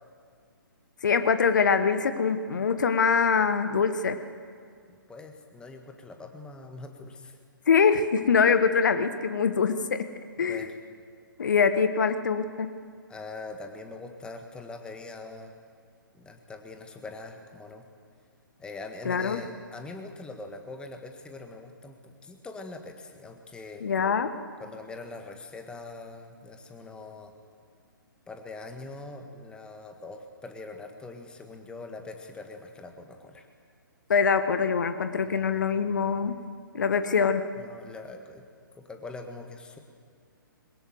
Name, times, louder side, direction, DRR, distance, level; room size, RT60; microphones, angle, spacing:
voice 1, 1.0-4.2 7.7-10.0 10.4-10.7 11.4-12.7 19.0-19.4 23.8-24.3 34.1-36.4 36.7-37.4, left 6 dB, 55° left, 10 dB, 1.5 m, -24 dB
voice 2, 4.9-7.4 10.4-10.7 13.1-15.5 16.1-17.9 18.6-23.9 24.6-27.3 28.3-33.5 35.2-35.7 37.6-38.4 38.8-39.8, left 3 dB, 10° left, 5 dB, 1.7 m, -43 dB
22.0 x 20.0 x 7.8 m, 2.1 s
figure-of-eight pair, 125°, 12 cm